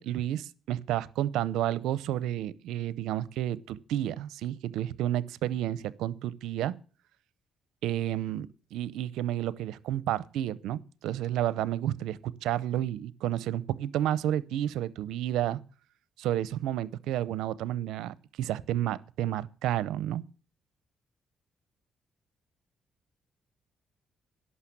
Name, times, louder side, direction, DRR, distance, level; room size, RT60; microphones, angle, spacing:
voice 1, 0.0-6.7 7.8-15.6 16.2-20.2, right 12 dB, 90° right, 0.6 m, -31 dB
11.5 x 6.4 x 8.6 m
cardioid pair, 90°, 0 cm